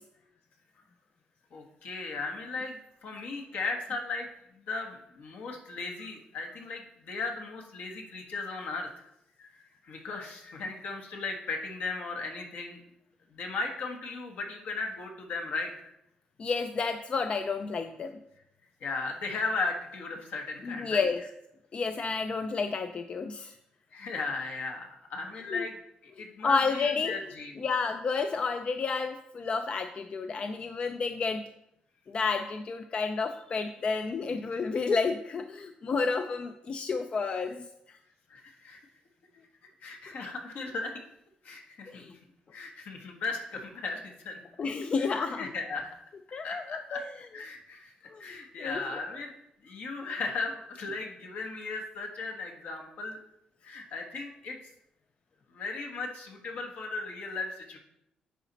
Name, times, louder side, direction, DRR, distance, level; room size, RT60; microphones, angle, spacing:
voice 1, 1.5-4.3 4.5-9.0 9.4-12.8 13.3-15.7 18.8-21.1 23.9-25.8 26.2-27.5 38.3-38.8 39.8-40.9 41.4-42.2 42.5-44.4 45.0-45.9 46.4-47.0 47.3-47.9 48.2-49.3 49.6-53.2 53.6-54.6 55.5-57.8, left 3 dB, 70° left, 3 dB, 1.3 m, -36 dB
voice 2, 16.4-18.1 20.6-21.2 21.7-23.5 25.5-25.6 26.2-27.1 27.6-31.4 32.1-38.0 41.9-42.1 44.6-45.5 46.3-47.0 48.1-48.8, left 4 dB, 40° left, 8 dB, 0.4 m, -31 dB
9.9 x 4.0 x 4.1 m, 0.80 s
cardioid pair, 110°, 3 cm